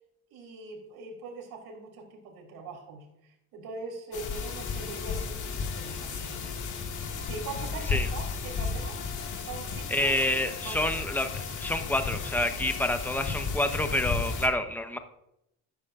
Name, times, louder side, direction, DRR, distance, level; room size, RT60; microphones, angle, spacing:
voice 1, 0.3-6.4 6.7-9.0 9.4-10.2 10.6-11.1, right 3 dB, 70° right, 2 dB, 3.3 m, -42 dB
sound 1, 4.1-14.5, left 5 dB, 50° left, 2.1 m, -34 dB
voice 2, 9.9-15.0, left 1 dB, 5° left, 7 dB, 1.0 m, -28 dB
14.0 x 9.6 x 2.5 m, 0.82 s
cardioid pair, 100°, 39 cm